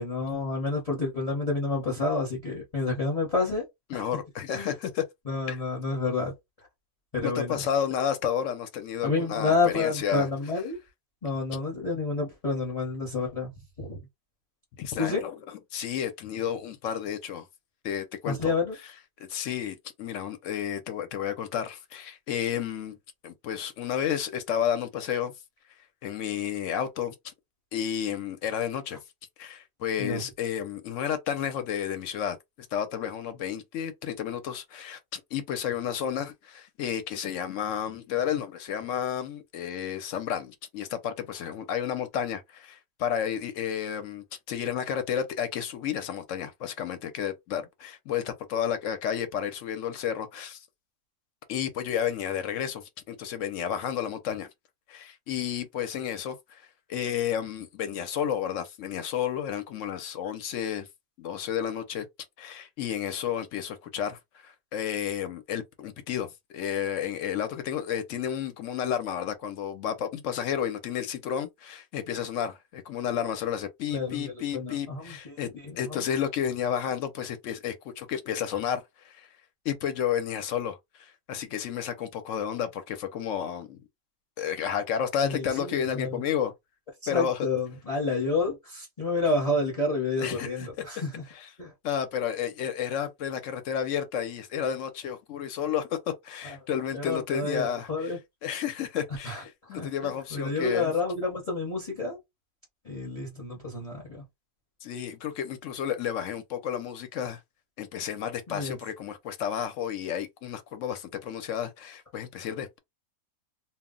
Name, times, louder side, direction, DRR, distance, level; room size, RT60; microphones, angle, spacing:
voice 1, 0.0-3.6 3.9-4.0 4.5-4.7 5.3-6.3 7.1-7.7 9.0-10.8 11.2-13.5 13.8-14.0 15.0-15.2 18.3-18.7 30.0-30.2 73.9-75.4 75.7-76.1 85.2-86.2 87.1-91.2 91.6-91.7 96.4-96.6 96.9-98.2 99.2-102.2 102.8-104.2 108.5-108.8, left 3 dB, 35° left, 0.8 m, -29 dB
voice 2, 3.9-5.0 5.5-5.6 7.2-10.3 14.8-17.5 17.8-18.6 19.2-23.0 23.2-25.3 26.0-27.1 27.7-29.0 29.4-32.4 32.7-50.6 51.5-54.5 54.9-56.6 56.9-60.9 61.2-62.1 62.4-79.3 79.6-83.8 84.4-86.5 87.1-87.5 90.2-90.7 91.3-91.5 91.8-98.1 98.4-100.9 104.8-107.4 107.8-112.8, left 9 dB, 70° left, 0.8 m, -31 dB
2.3 x 2.0 x 3.6 m
omnidirectional pair, 1.5 m